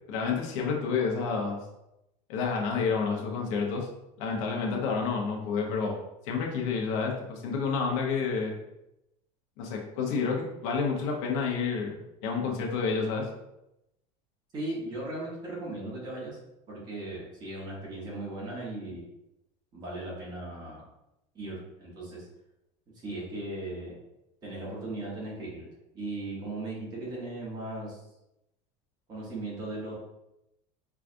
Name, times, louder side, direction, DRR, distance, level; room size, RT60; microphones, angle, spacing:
voice 1, 0.1-1.6 2.3-3.9 4.2-6.0 6.2-8.5 9.6-13.3, left 5 dB, 65° left, 0 dB, 0.8 m, -29 dB
voice 2, 14.5-16.4 16.7-19.0 19.7-20.8 21.3-22.3 22.9-24.0 24.4-25.7 25.9-28.0 29.1-29.9, right 2 dB, 25° right, -5 dB, 1.1 m, -37 dB
4.7 x 2.3 x 2.5 m, 0.87 s
cardioid pair, 175°, 17 cm